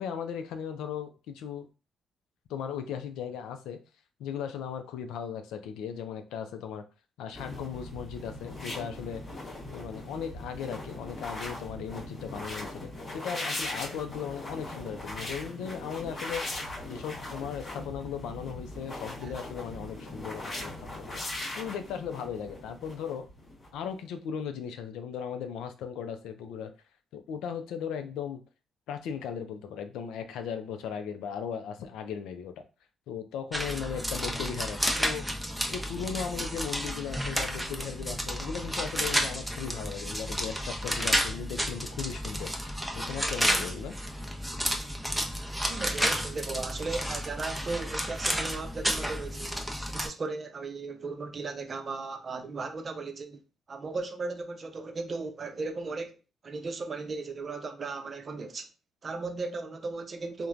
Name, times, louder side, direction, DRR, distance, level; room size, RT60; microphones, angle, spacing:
voice 1, 0.0-1.7 2.5-3.8 4.2-6.8 7.2-9.2 9.7-16.4 16.9-21.2 21.5-23.3 23.7-26.7 27.1-28.4 28.9-32.5 33.1-35.3 35.7-42.5 43.0-43.9, left 7 dB, 80° left, 0.4 m, -37 dB
sound 1, 7.3-24.0, left 1 dB, 45° left, 1.1 m, -40 dB
sound 2, 33.5-50.1, equal, 5° right, 0.6 m, -31 dB
voice 2, 45.7-49.6 49.9-53.4 53.7-56.2 56.4-58.7 59.0-60.5, right 3 dB, 45° right, 0.5 m, -36 dB
3.0 x 2.1 x 2.4 m
supercardioid pair, 55°, 0 cm